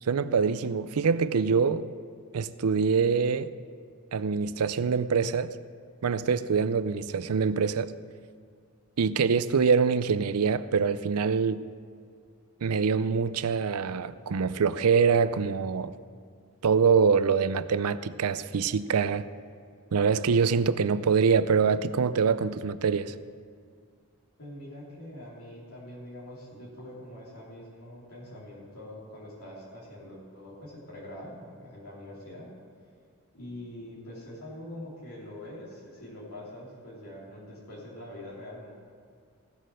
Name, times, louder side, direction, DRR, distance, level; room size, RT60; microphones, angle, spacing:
voice 1, 0.0-1.9 2.3-3.5 4.1-5.6 6.0-7.9 9.0-11.6 12.6-15.9 16.6-19.2 19.9-23.1, right 5 dB, 85° right, 14 dB, 0.5 m, -24 dB
voice 2, 24.4-32.5 33.3-38.7, left 1 dB, 70° left, -7 dB, 3.2 m, -44 dB
16.5 x 6.7 x 6.3 m, 2.1 s
head